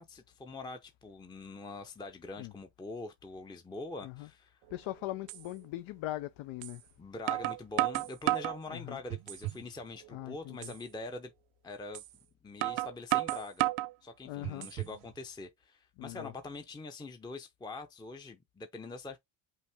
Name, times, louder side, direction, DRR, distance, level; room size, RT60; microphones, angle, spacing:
voice 1, 0.0-4.6 7.0-11.3 11.6-12.0 12.4-13.6 14.0-19.2, left 3 dB, 10° left, 0.5 m, -44 dB
voice 2, 4.7-6.8 8.7-9.0 10.1-10.7 14.2-14.7 16.0-16.3, left 16 dB, 90° left, 0.6 m, -40 dB
sound 1, 4.7-4.8 5.3-5.4 6.6-6.8 7.3-8.6 9.1-9.6 10.0-10.1 10.6-10.8 11.9-12.1 12.6-13.9 14.4-15.0, right 18 dB, 85° right, 0.6 m, -32 dB
5.6 x 2.5 x 3.4 m
cardioid pair, 130°, 46 cm